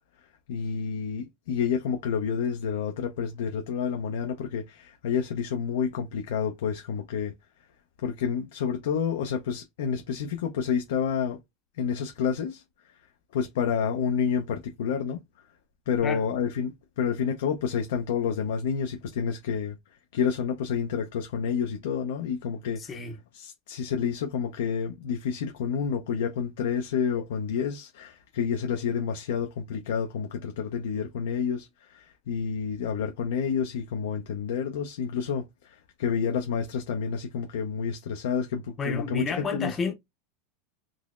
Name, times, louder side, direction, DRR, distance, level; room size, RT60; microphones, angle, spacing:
voice 1, 0.5-7.3 8.0-11.4 11.8-12.6 13.3-15.2 15.9-19.8 20.1-23.0 23.3-39.8, left 7 dB, 85° left, 0.5 m, -29 dB
voice 2, 22.8-23.1 38.8-39.9, left 4 dB, 20° left, 0.6 m, -31 dB
3.8 x 3.0 x 2.4 m
supercardioid pair, 140°, 0 cm